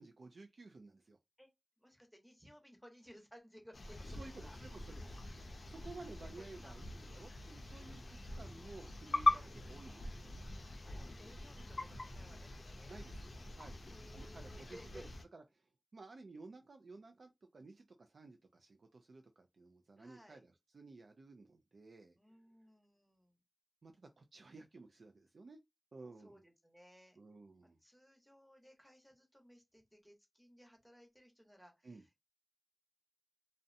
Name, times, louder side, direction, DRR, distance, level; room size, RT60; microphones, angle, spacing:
voice 1, 0.0-1.2 4.1-5.2 5.7-10.3 12.9-13.1 13.5-13.8 14.1-15.6 15.9-22.2 23.8-25.6 25.9-26.4 27.2-27.8 31.8-32.0, right 3 dB, 85° right, 0.3 m, -55 dB
voice 2, 1.8-4.6 5.4-6.1 6.6-6.7 10.8-13.0 13.9-15.0 20.0-20.4 22.2-23.4 26.2-27.2 27.8-32.2, equal, ahead, 0.8 m, -60 dB
sound 1, 3.7-15.2, left 2 dB, 65° left, 0.4 m, -41 dB
2.5 x 2.0 x 2.6 m
wide cardioid pair, 90°, 0 cm